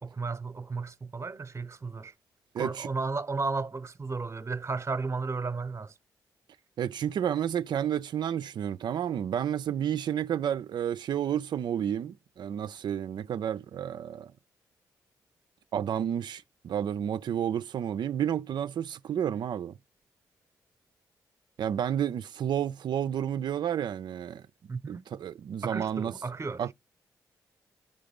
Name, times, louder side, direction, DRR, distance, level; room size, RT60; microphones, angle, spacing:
voice 1, 0.0-2.1 2.6-5.9 24.7-25.0 25.6-26.6, right 4 dB, 35° right, 0.9 m, -33 dB
voice 2, 2.5-2.9 6.8-14.3 15.7-19.7 21.6-24.4 24.9-26.1 26.6-26.7, right 9 dB, 65° right, 0.4 m, -31 dB
10.5 x 3.8 x 5.2 m
supercardioid pair, 45°, 8 cm